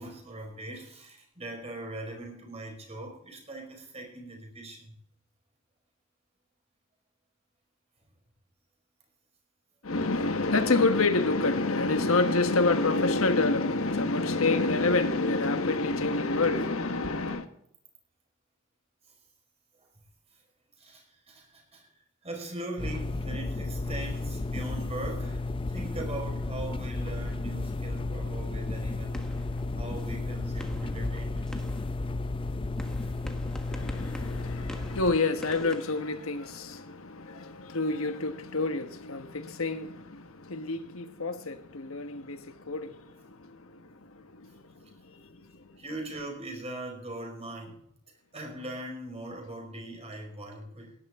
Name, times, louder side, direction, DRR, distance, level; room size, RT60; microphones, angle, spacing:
voice 1, 0.0-5.0 19.8-19.9 20.3-20.4 20.8-21.9 22.2-29.2 29.7-31.7 33.0-33.1 45.8-47.8 48.3-50.9, right 1 dB, 30° right, 5.0 m, -40 dB
voice 2, 9.8-17.5 33.7-45.8, left 3 dB, 75° left, 1.4 m, -28 dB
sound 1, 22.8-35.2, left 2 dB, 25° left, 0.5 m, -33 dB
sound 2, 28.9-36.9, equal, 5° left, 1.5 m, -49 dB
17.5 x 11.5 x 3.7 m
head